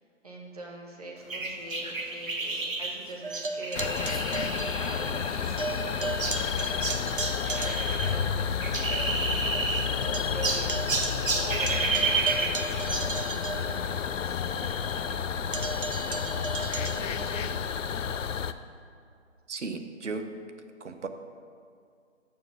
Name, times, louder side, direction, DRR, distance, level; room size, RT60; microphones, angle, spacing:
voice 1, 0.2-6.9 7.5-9.5 9.8-15.2 16.1-16.5 16.8-17.8, right 1 dB, 30° right, -1 dB, 1.1 m, -43 dB
sound 1, 1.3-8.1 8.4-10.1 10.4-13.1, right 3 dB, 85° right, 1.3 m, -31 dB
sound 2, 3.2-5.3 5.6-8.2 8.7-8.8 9.2-9.3 9.5-14.3 15.5-17.4, right 3 dB, 45° right, 0.4 m, -36 dB
sound 3, 3.7-18.5, left 7 dB, 75° left, 0.5 m, -31 dB
voice 2, 19.5-20.3 20.8-21.1, right 4 dB, 65° right, 8 dB, 0.8 m, -35 dB
7.1 x 6.6 x 6.7 m, 2.3 s
hypercardioid pair, 170°, 39 cm